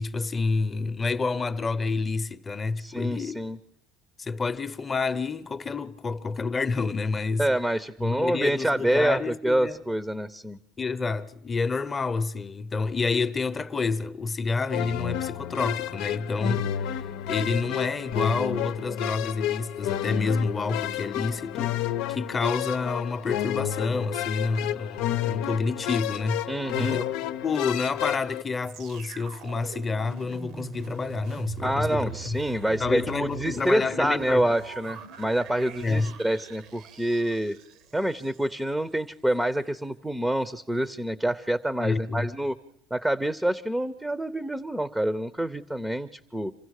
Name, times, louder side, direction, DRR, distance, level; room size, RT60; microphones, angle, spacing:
voice 1, 0.0-3.4 4.2-7.5 8.0-9.8 10.8-16.9 17.2-26.5 26.8-27.0 27.4-32.4 32.8-34.5 35.8-36.1 41.8-42.3, left 4 dB, 25° left, 0.9 m, -28 dB
voice 2, 2.8-3.6 7.4-10.6 26.5-27.0 31.6-37.6 37.9-42.5 42.9-46.5, right 1 dB, 5° right, 0.7 m, -27 dB
sound 1, 14.7-28.4, left 11 dB, 75° left, 0.8 m, -31 dB
sound 2, 28.6-38.7 39.3-39.4, right 7 dB, 65° right, 1.1 m, -43 dB
27.0 x 15.5 x 6.5 m
supercardioid pair, 110°, 0 cm